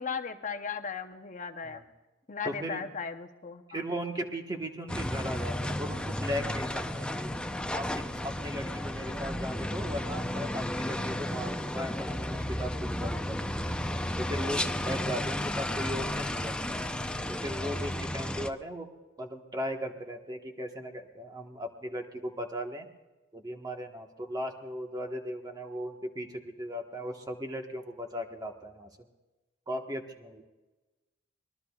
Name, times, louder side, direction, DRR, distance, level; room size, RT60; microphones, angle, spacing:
voice 1, 0.0-1.8 2.3-3.8, left 5 dB, 40° left, 7 dB, 0.8 m, -36 dB
voice 2, 2.4-2.9 3.7-7.3 7.7-13.4 14.2-16.8 17.3-18.9 19.2-22.8 23.3-28.9 29.7-30.4, equal, 20° right, 3 dB, 1.3 m, -37 dB
sound 1, 4.9-18.5, left 1 dB, 5° left, 0.6 m, -33 dB
24.5 x 20.0 x 2.4 m, 1.2 s
head